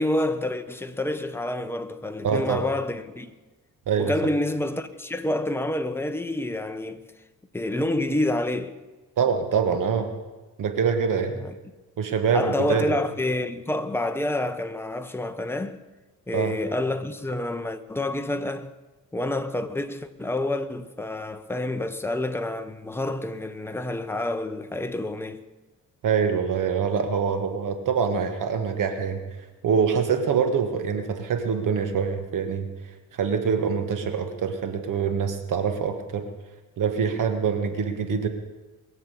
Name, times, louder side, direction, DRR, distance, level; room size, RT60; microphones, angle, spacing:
voice 1, 0.0-3.3 4.0-7.1 7.5-8.8 11.3-11.5 12.3-15.8 16.3-18.7 19.1-25.5, left 1 dB, 5° left, 0.9 m, -28 dB
voice 2, 2.2-2.6 3.9-4.1 9.2-10.1 10.6-11.3 12.0-12.9 16.3-16.5 26.0-29.2 29.6-32.7 33.2-36.3 36.8-38.3, right 6 dB, 60° right, 1.6 m, -24 dB
21.5 x 7.4 x 8.3 m
cardioid pair, 115°, 35 cm